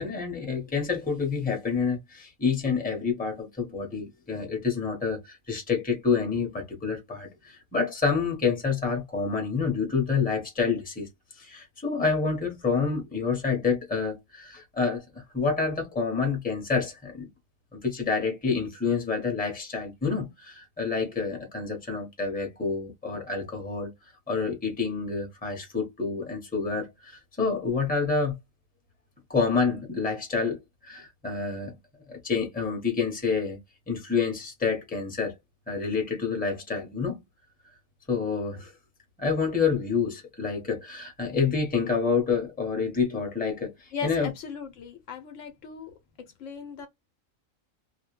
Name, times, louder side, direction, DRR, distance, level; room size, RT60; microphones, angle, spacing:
voice 1, 0.0-11.1 11.4-17.3 17.7-23.9 24.3-28.3 29.3-31.8 32.1-33.6 33.9-35.4 35.7-37.2 38.1-38.7 39.2-44.3, left 5 dB, 10° left, 0.8 m, -28 dB
voice 2, 43.9-45.9 46.4-46.9, left 6 dB, 70° left, 0.9 m, -37 dB
2.5 x 2.1 x 3.0 m
omnidirectional pair, 1.4 m